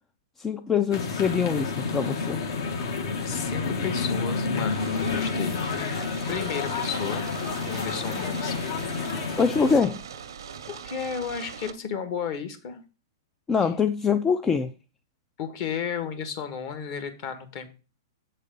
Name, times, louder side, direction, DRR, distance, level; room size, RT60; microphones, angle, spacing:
voice 1, 0.4-2.4 9.4-10.0 13.5-14.7, left 6 dB, 15° left, 0.3 m, -24 dB
sound 1, 0.9-9.8, left 4 dB, 65° left, 1.5 m, -29 dB
voice 2, 3.2-7.3 7.7-8.6 10.7-12.8 15.4-17.7, left 7 dB, 40° left, 1.3 m, -33 dB
sound 2, 4.7-11.7, right 7 dB, 85° right, 0.8 m, -41 dB
7.5 x 4.1 x 5.2 m
hypercardioid pair, 150°, 2 cm